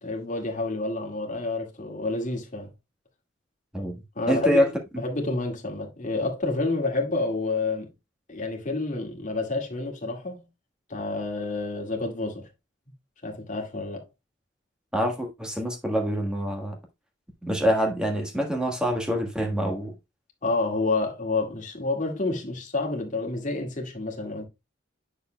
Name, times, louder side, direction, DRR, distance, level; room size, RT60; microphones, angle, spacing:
voice 1, 0.0-2.7 4.2-7.9 8.3-10.5 10.9-12.5 13.2-14.0 20.4-24.5, left 3 dB, 40° left, 2.0 m, -29 dB
voice 2, 4.3-4.7 14.9-16.8 17.4-19.9, equal, 5° right, 1.4 m, -25 dB
8.4 x 6.6 x 2.2 m
head